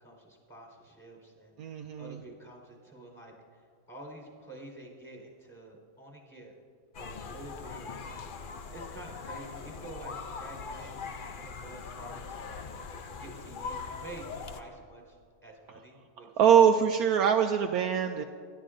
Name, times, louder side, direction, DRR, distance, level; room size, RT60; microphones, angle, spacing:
voice 1, 0.0-6.5 7.0-16.6 16.9-17.1, right 2 dB, ahead, -1 dB, 4.2 m, -49 dB
voice 2, 1.6-2.2 16.4-18.2, right 8 dB, 70° right, 5 dB, 1.0 m, -23 dB
sound 1, 6.9-14.6, left 5 dB, 80° left, 0.4 m, -41 dB
28.0 x 13.0 x 2.6 m, 2.2 s
omnidirectional pair, 1.8 m